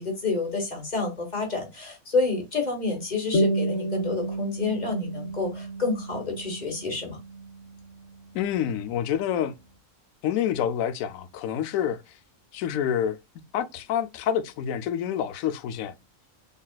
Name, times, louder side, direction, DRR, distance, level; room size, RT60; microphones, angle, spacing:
voice 1, 0.0-7.2, left 3 dB, 35° left, 1.3 m, -29 dB
sound 1, 3.3-8.3, right 1 dB, 70° left, 1.2 m, -30 dB
voice 2, 8.3-9.5 10.2-12.2 12.5-13.2 13.5-16.0, left 9 dB, 85° left, 1.0 m, -27 dB
4.0 x 3.6 x 2.2 m
omnidirectional pair, 1.4 m